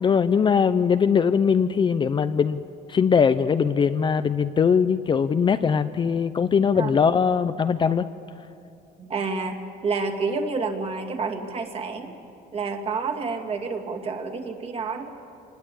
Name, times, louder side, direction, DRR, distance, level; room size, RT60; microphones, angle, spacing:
voice 1, 0.0-2.6 2.9-8.1, left 6 dB, 30° left, 11 dB, 0.6 m, -21 dB
voice 2, 9.0-12.2 12.5-15.1, right 4 dB, 35° right, 3 dB, 2.4 m, -29 dB
25.5 x 20.0 x 8.6 m, 2.8 s
cardioid pair, 135°, 17 cm